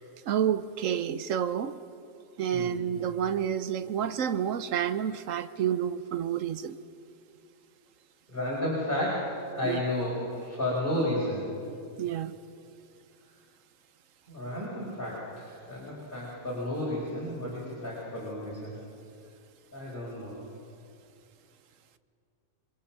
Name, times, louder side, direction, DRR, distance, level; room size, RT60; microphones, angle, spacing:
voice 1, 0.3-1.7 2.4-6.8 9.6-9.8 12.0-12.3, right 9 dB, 65° right, 13 dB, 1.1 m, -29 dB
voice 2, 2.5-2.8 8.3-11.4 14.3-18.7 19.7-20.4, left 1 dB, 35° left, -7 dB, 4.5 m, -32 dB
27.0 x 22.0 x 5.8 m, 2.6 s
omnidirectional pair, 1.5 m